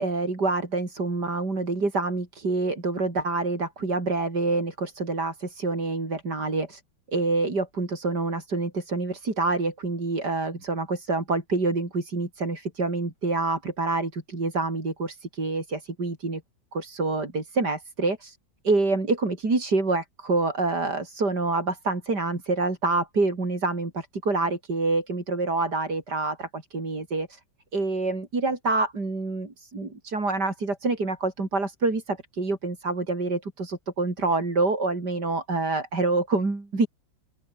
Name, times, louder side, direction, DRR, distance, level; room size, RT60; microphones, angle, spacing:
voice 1, 0.0-6.8 7.1-16.4 16.7-18.4 18.6-27.4 27.7-36.9, right 3 dB, 60° right, 5.2 m, -27 dB
open air
omnidirectional pair, 2.1 m